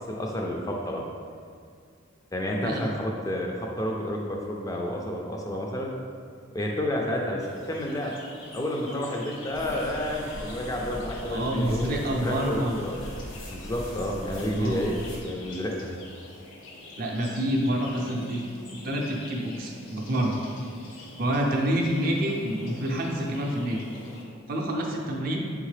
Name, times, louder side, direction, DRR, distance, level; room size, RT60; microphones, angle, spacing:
voice 1, 0.1-1.0 2.3-5.9 6.5-8.1 8.5-13.0 13.5-14.9 15.2-15.9, left 1 dB, 15° left, -1 dB, 0.3 m, -30 dB
sound 1, 7.4-24.2, left 2 dB, 65° left, 0.7 m, -45 dB
sound 2, 9.5-15.2, equal, 85° left, 1.0 m, -39 dB
voice 2, 11.3-12.9 14.6-14.8 17.0-18.4 18.8-20.4 21.2-23.8 24.5-25.4, right 1 dB, 45° right, 0 dB, 0.5 m, -27 dB
3.6 x 3.5 x 3.2 m, 2.2 s
head